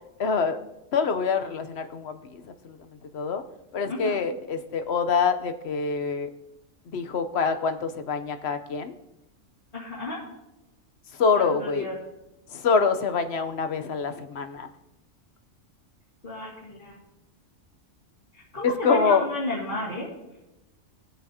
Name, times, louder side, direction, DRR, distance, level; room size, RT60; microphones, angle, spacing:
voice 1, 0.2-0.6 0.9-3.4 3.7-6.3 6.9-8.9 11.2-11.9 12.5-14.7 18.6-19.2, left 5 dB, 60° left, 8 dB, 1.0 m, -25 dB
voice 2, 9.7-10.2 11.4-12.0 16.2-17.0 18.3-20.1, left 2 dB, 40° left, -7 dB, 2.5 m, -32 dB
20.0 x 7.7 x 2.8 m, 0.95 s
omnidirectional pair, 1.3 m